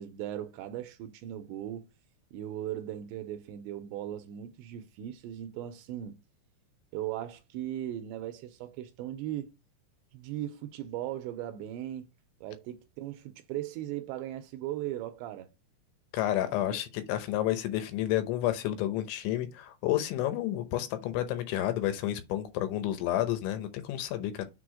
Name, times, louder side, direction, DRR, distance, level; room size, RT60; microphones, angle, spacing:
voice 1, 0.0-1.9 2.3-6.2 6.9-9.5 10.1-12.1 12.4-15.5 16.7-16.8, right 12 dB, 80° right, 2.7 m, -38 dB
voice 2, 16.1-24.5, left 13 dB, 80° left, 3.2 m, -30 dB
6.8 x 4.5 x 4.9 m
omnidirectional pair, 5.4 m